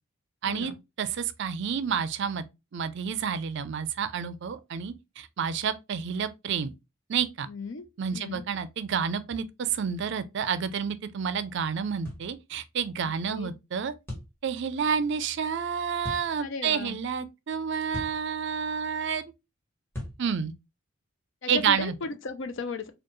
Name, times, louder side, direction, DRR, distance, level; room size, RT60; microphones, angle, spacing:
voice 1, 0.5-0.8 7.5-7.9 8.1-8.4 13.3-13.5 16.4-17.0 21.4-22.9, left 4 dB, 60° left, 0.5 m, -35 dB
voice 2, 1.0-2.4 2.7-6.7 7.1-7.5 8.0-13.9 14.4-19.2 20.2-20.5 21.5-21.9, right 7 dB, 55° right, 0.4 m, -29 dB
sound 1, 12.0-12.3 14.1-14.3 16.0-16.3 17.9-18.2 19.9-20.2, left 1 dB, 10° left, 1.6 m, -37 dB
4.3 x 2.4 x 3.0 m
head